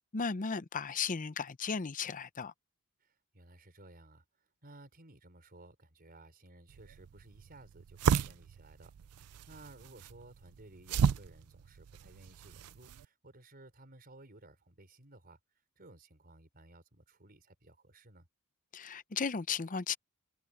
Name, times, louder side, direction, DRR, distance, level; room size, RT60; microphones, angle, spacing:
voice 1, 0.1-2.5 18.7-20.0, left 5 dB, 35° left, 0.7 m, -35 dB
voice 2, 3.0-15.4 15.8-18.3, right 2 dB, 45° right, 4.8 m, -57 dB
sound 1, 6.7-13.1, right 7 dB, 90° right, 0.4 m, -34 dB
head